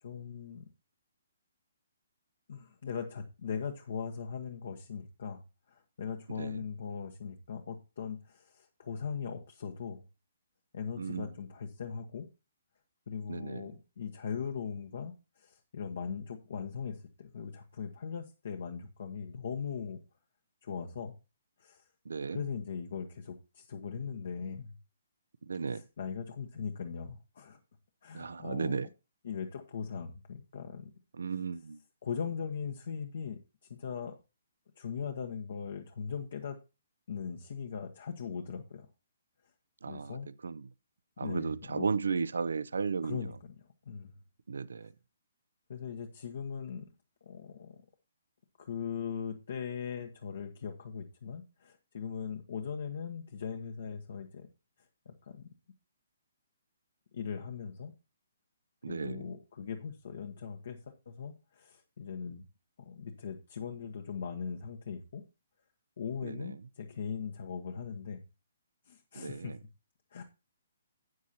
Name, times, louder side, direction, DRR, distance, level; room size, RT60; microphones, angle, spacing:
voice 1, 0.0-0.6 2.5-10.0 10.7-12.3 13.1-20.0 20.6-21.1 21.6-21.8 22.3-24.8 25.6-27.6 28.0-28.8 29.2-30.9 32.0-33.4 33.7-34.2 34.8-36.6 37.1-38.9 39.9-40.3 41.2-41.9 43.0-43.5 43.9-44.1 44.8-44.9 45.7-46.8 47.2-47.8 48.6-54.5 55.0-55.5 57.1-57.9 58.9-62.4 62.8-65.2 66.0-68.2 68.9-69.5 70.1-70.2, left 6 dB, 60° left, 1.1 m, -40 dB
voice 2, 11.0-11.3 13.3-13.7 22.1-22.4 25.5-25.8 28.1-28.9 31.2-31.8 39.8-40.7 41.2-43.3 44.5-44.9 58.8-59.3 66.2-66.5 69.2-69.6, right 5 dB, 70° right, 0.5 m, -35 dB
12.5 x 8.4 x 2.8 m
figure-of-eight pair, 130°, 0 cm